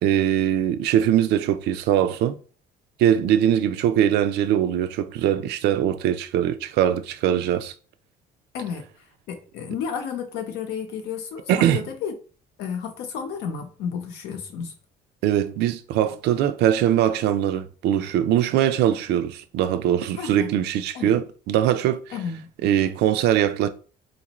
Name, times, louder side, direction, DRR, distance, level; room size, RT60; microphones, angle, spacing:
voice 1, 0.0-2.4 3.0-7.7 11.5-11.8 15.2-22.0 22.6-23.7, right 10 dB, 80° right, 0.4 m, -21 dB
voice 2, 9.3-12.1 12.6-14.7 20.2-20.5 20.9-21.1 22.1-22.5, left 7 dB, 85° left, 0.8 m, -32 dB
4.1 x 2.5 x 2.9 m
cardioid pair, 110°, 17 cm